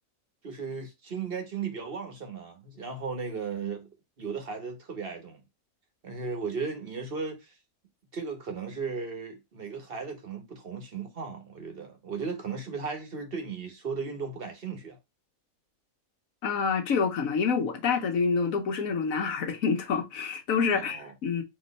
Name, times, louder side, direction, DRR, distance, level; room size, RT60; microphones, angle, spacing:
voice 1, 0.4-3.9 4.2-5.4 6.0-7.5 8.1-15.0 20.7-21.1, right 5 dB, 45° right, 1.3 m, -36 dB
voice 2, 16.4-21.4, left 5 dB, 70° left, 1.3 m, -27 dB
4.3 x 2.9 x 4.1 m
omnidirectional pair, 1.5 m